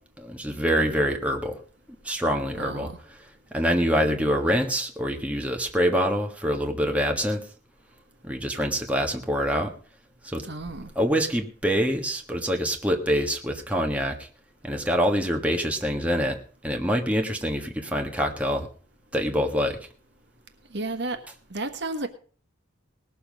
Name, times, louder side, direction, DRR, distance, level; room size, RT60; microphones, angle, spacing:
voice 1, 0.2-1.6 2.0-2.9 3.5-7.4 8.2-9.7 10.2-10.5 10.9-14.3 14.6-16.4 16.6-18.7 19.1-19.8, equal, 5° right, 1.5 m, -25 dB
voice 2, 2.5-2.9 10.4-10.9 20.7-21.2 21.5-22.1, right 2 dB, 65° right, 1.4 m, -32 dB
19.0 x 7.0 x 5.3 m
head